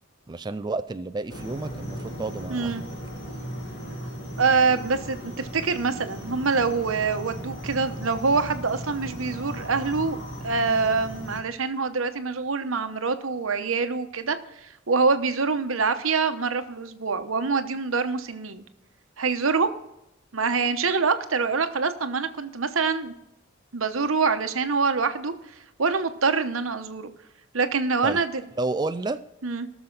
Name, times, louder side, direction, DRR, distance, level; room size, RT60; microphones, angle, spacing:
voice 1, 0.3-2.9 28.0-28.2 28.6-29.2, right 3 dB, 20° right, 10 dB, 0.4 m, -30 dB
sound 1, 1.3-11.4, equal, 60° left, 2.6 m, -37 dB
voice 2, 2.5-2.8 4.4-10.2 10.4-18.6 19.2-19.7 20.3-23.1 23.7-25.3 25.8-27.1 27.5-28.3 29.4-29.7, right 4 dB, 85° right, 9 dB, 1.0 m, -25 dB
18.5 x 6.9 x 4.0 m, 0.88 s
head